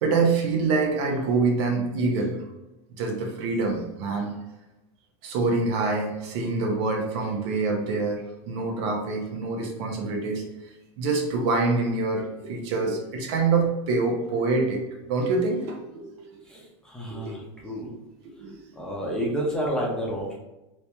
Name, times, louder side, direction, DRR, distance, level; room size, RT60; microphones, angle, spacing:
voice 1, 0.0-2.3 3.0-4.4 5.2-10.4 11.0-16.3 17.1-17.4 18.2-18.6, right 3 dB, 60° right, 2 dB, 0.8 m, -26 dB
voice 2, 16.5-17.9 18.8-20.4, equal, 5° left, -4 dB, 0.7 m, -30 dB
3.0 x 2.9 x 3.4 m, 0.98 s
supercardioid pair, 140°, 16 cm